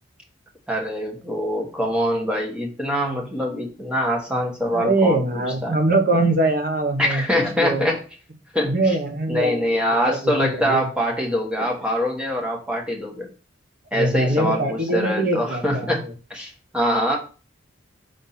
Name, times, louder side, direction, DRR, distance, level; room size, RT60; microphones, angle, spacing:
voice 1, 0.7-5.2 5.6-5.8 7.0-8.0 8.5-9.0 9.3-13.3 13.9-16.0 16.3-17.2, equal, 5° right, 0 dB, 1.4 m, -24 dB
voice 2, 4.7-7.2 7.6-7.9 8.6-9.6 10.1-10.9 13.9-16.1, right 2 dB, 45° right, 5 dB, 1.2 m, -22 dB
5.5 x 3.6 x 5.7 m, 0.35 s
head